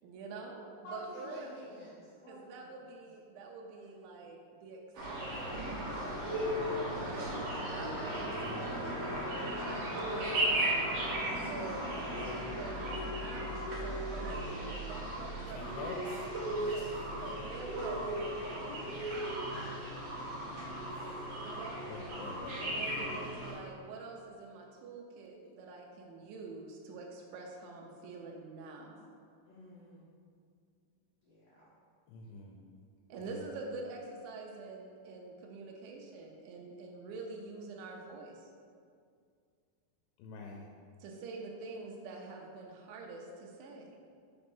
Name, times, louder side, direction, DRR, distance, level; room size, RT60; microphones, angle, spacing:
voice 1, 0.0-1.7 2.3-5.9 7.0-7.3 7.6-10.8 11.5-11.8 12.5-13.4 13.8-19.0 21.3-21.9 22.6-29.0 33.1-38.5 41.0-44.0, right 3 dB, 80° right, 0 dB, 2.3 m, -46 dB
voice 2, 0.8-2.9 6.6-7.8 11.1-12.3 16.6-16.7 18.7-20.0 20.3-21.2 22.2-22.4 29.5-30.1 31.2-31.7, left 1 dB, 65° left, -9 dB, 1.7 m, -51 dB
sound 1, 4.9-23.5, right 1 dB, 55° right, 2.1 m, -36 dB
voice 3, 8.4-8.9 12.1-12.5 15.5-16.0 16.6-16.9 17.1-17.2 20.9-21.1 21.9-23.2 32.1-32.6 33.3-33.4 40.2-40.7, left 4 dB, 90° left, 0 dB, 2.4 m, -47 dB
5.4 x 3.9 x 5.3 m, 2.2 s
omnidirectional pair, 4.2 m